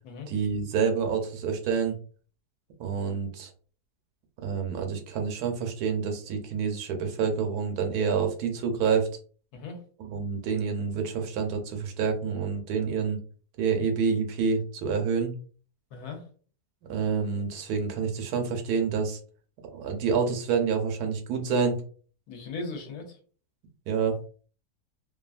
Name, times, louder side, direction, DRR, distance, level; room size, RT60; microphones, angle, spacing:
voice 1, 0.3-2.0 2.8-3.5 4.4-9.1 10.0-13.2 13.6-15.3 16.9-19.2 19.7-21.8 23.9-24.2, right 6 dB, 75° right, 4 dB, 1.1 m, -28 dB
voice 2, 15.9-16.2 22.3-23.2, left 3 dB, 70° left, 4 dB, 1.2 m, -38 dB
2.8 x 2.5 x 2.4 m, 0.42 s
omnidirectional pair, 1.7 m